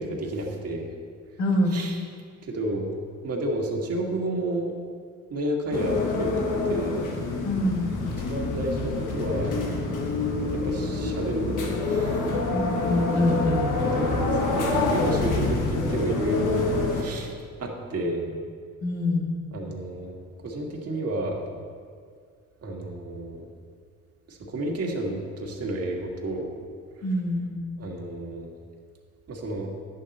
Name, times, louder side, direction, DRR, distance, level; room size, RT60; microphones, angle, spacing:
voice 1, 0.1-0.9 1.7-2.0 2.4-2.9 3.2-4.7 5.3-7.0 8.2-9.5 10.5-12.5 13.1-13.3 13.7-17.3 17.6-18.3 19.5-20.2 20.4-21.4 22.6-23.5 24.3-26.5 27.8-28.5 29.3-29.7, right 1 dB, 55° right, -1 dB, 1.9 m, -31 dB
voice 2, 1.4-1.8 7.4-7.9 12.5-14.0 18.3-18.4 18.8-19.4 27.0-27.6, left 1 dB, 60° left, 0 dB, 2.0 m, -25 dB
sound 1, 5.7-17.0, left 3 dB, 85° left, 1.4 m, -26 dB
11.0 x 8.2 x 4.2 m, 2.1 s
cardioid pair, 90°, 30 cm